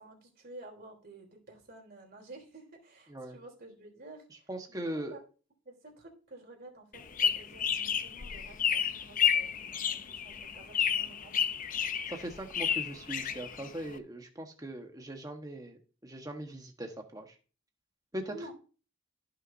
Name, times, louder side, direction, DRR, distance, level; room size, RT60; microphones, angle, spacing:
voice 1, 0.0-4.2 4.7-4.8 5.1-5.2 5.6-11.5 18.3-18.5, right 2 dB, 50° right, 2 dB, 3.3 m, -51 dB
voice 2, 4.5-5.2 12.1-17.3 18.1-18.3, right 1 dB, 20° right, 3 dB, 1.3 m, -40 dB
sound 1, 6.9-14.0, left 8 dB, 40° left, 0.6 m, -31 dB
14.5 x 6.2 x 2.7 m, 0.36 s
head